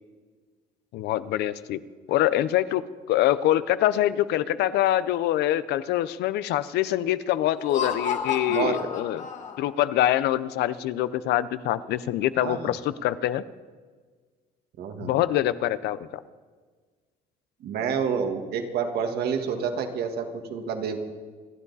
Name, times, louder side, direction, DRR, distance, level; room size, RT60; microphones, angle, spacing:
voice 1, 0.9-1.8 2.1-2.8 3.1-9.2 9.6-13.4 15.0-16.1, left 13 dB, 80° left, 15 dB, 0.7 m, -24 dB
Laughter, 7.5-9.9, left 6 dB, 45° left, 1.5 m, -31 dB
voice 2, 8.5-8.9 12.4-12.7 14.8-15.1 17.6-21.0, right 6 dB, 70° right, 5 dB, 1.8 m, -28 dB
28.0 x 9.8 x 4.1 m, 1.5 s
cardioid pair, 110°, 17 cm